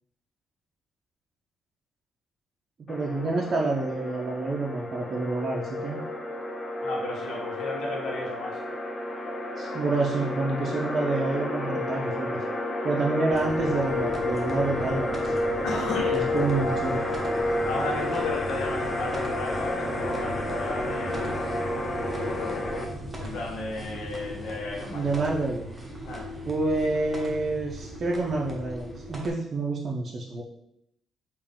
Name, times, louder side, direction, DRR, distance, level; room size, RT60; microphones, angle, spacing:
sound 1, 2.9-22.8, left 1 dB, 35° left, 0.5 m, -30 dB
voice 1, 2.9-6.0 9.6-12.4 12.8-15.3 16.1-17.0 24.9-25.7 26.4-30.4, right 3 dB, 45° right, -2 dB, 0.5 m, -28 dB
voice 2, 6.8-8.6 15.6-16.3 17.6-21.4 22.2-22.7 23.1-25.2 26.0-26.3, left 2 dB, 70° left, 0 dB, 0.9 m, -34 dB
sound 2, 13.3-29.3, equal, 20° right, 0.8 m, -38 dB
3.5 x 2.5 x 3.6 m, 0.77 s
cardioid pair, 90°, 0 cm